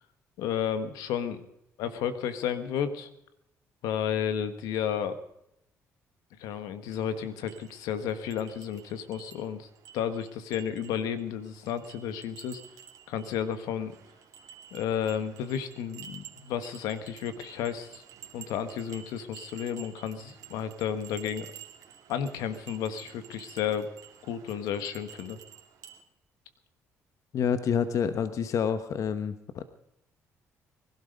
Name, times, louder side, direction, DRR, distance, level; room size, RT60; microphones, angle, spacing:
voice 1, 0.4-1.5 1.8-3.1 3.8-5.2 6.4-9.7 9.9-12.6 13.1-14.0 14.7-18.0 18.3-21.5 22.1-23.9 24.2-25.4, left 8 dB, 85° left, 11 dB, 1.4 m, -32 dB
sound 1, 6.9-26.0, right 9 dB, 75° right, 2.4 m, -51 dB
voice 2, 27.3-29.7, left 7 dB, 60° left, 11 dB, 1.0 m, -28 dB
21.0 x 12.0 x 5.3 m, 0.78 s
supercardioid pair, 75°, 6 cm